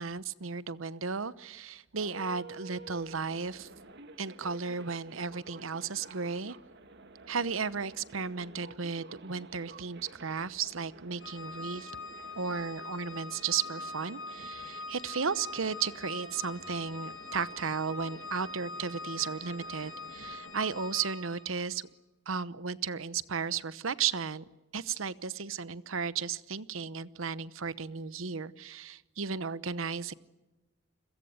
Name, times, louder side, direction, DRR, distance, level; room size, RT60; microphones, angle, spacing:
voice 1, 0.0-3.7 4.2-6.6 7.3-11.9 12.4-21.8 22.3-24.4 24.7-30.1, right 6 dB, 90° right, 16 dB, 0.9 m, -34 dB
sound 1, 2.0-20.9, right 3 dB, 60° right, 2.0 m, -51 dB
Organ, 11.2-21.6, left 3 dB, 90° left, 4.4 m, -43 dB
30.0 x 22.5 x 8.1 m, 1.1 s
head